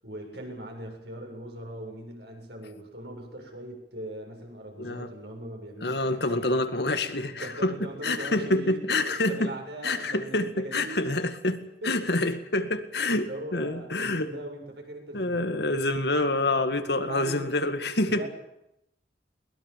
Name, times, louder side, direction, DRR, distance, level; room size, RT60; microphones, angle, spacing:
voice 1, 0.0-6.5 7.3-8.8 9.0-11.0 11.8-12.1 13.1-15.9 16.9-17.5 18.1-18.3, right 1 dB, 75° right, 2 dB, 7.6 m, -40 dB
voice 2, 5.8-9.5 9.8-14.3 15.1-18.2, left 2 dB, 75° left, 9 dB, 2.1 m, -27 dB
22.0 x 20.5 x 7.6 m, 0.81 s
head